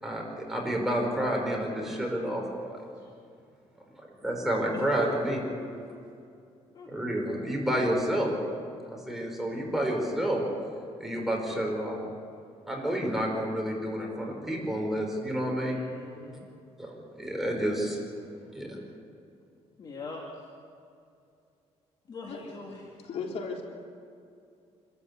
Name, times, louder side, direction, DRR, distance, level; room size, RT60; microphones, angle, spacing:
voice 1, 0.0-2.8 4.2-5.4 6.9-8.3 8.9-10.4 11.0-12.0 12.7-15.8 16.8-18.0 18.5-18.8, right 1 dB, 5° right, -1 dB, 5.0 m, -29 dB
voice 2, 4.7-6.3 6.7-6.9 15.7-16.5 19.8-20.2 22.1-22.9, left 3 dB, 40° left, -1 dB, 2.5 m, -42 dB
voice 3, 23.0-23.6, left 4 dB, 65° left, 0 dB, 3.8 m, -35 dB
27.0 x 13.5 x 8.4 m, 2.5 s
cardioid pair, 140°, 12 cm